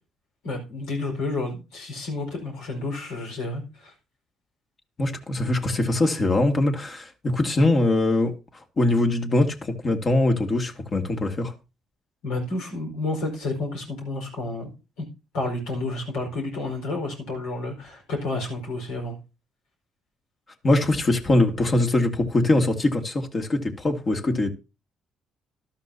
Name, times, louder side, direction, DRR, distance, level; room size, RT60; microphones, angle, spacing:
voice 1, 0.4-3.9 12.2-15.0 15.3-19.2, left 2 dB, 80° left, 4.8 m, -30 dB
voice 2, 5.0-8.3 8.8-11.5 20.6-24.5, left 2 dB, 40° left, 2.2 m, -22 dB
13.0 x 12.0 x 2.8 m
hypercardioid pair, 55°, 0 cm